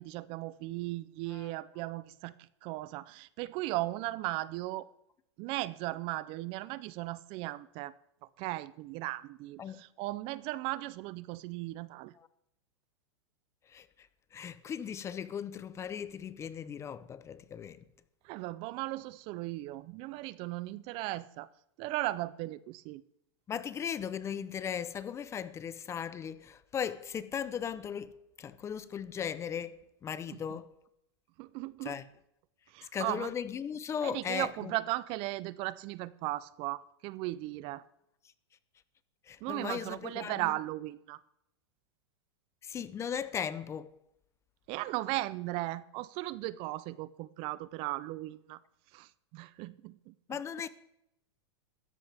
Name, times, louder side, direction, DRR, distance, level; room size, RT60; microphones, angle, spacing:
voice 1, 0.0-2.3 2.6-4.9 5.4-7.9 8.4-12.1 18.2-21.5 21.8-23.0 30.3-30.4 31.4-32.0 32.7-33.3 34.0-37.8 39.4-41.2 44.7-48.6 48.9-50.4, right 18 dB, 40° right, 0.5 m, -37 dB
voice 2, 14.3-17.8 23.5-30.7 31.8-32.1 32.9-34.7 39.3-40.5 42.6-44.0 50.3-50.7, left 8 dB, 20° left, 0.6 m, -37 dB
15.5 x 13.5 x 3.5 m
supercardioid pair, 140°, 15 cm